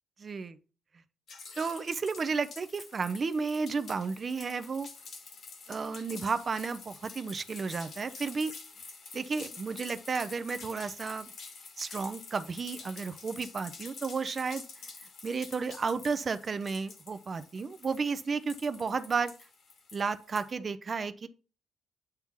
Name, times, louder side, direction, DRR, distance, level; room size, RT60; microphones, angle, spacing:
voice 1, 0.2-0.6 1.6-4.9 5.7-8.5 9.1-11.3 11.8-14.6 15.2-19.3 19.9-21.3, right 4 dB, 40° right, 0.6 m, -32 dB
sound 1, 1.3-20.5, left 4 dB, 60° left, 1.3 m, -48 dB
8.8 x 3.0 x 3.7 m
cardioid pair, 90°, 0 cm